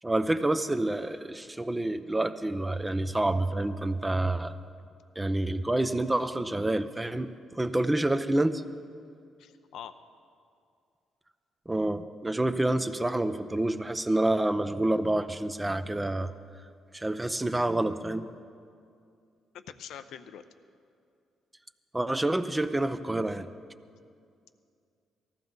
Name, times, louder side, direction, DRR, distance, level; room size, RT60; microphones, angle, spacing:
voice 1, 0.0-4.6 5.2-8.6 11.7-16.3 16.9-18.3 21.9-23.5, right 1 dB, 15° right, 10 dB, 0.6 m, -28 dB
voice 2, 9.4-9.9 19.5-20.4, left 9 dB, 80° left, 10 dB, 0.6 m, -44 dB
19.0 x 14.5 x 4.0 m, 2.4 s
cardioid pair, 90°, 0 cm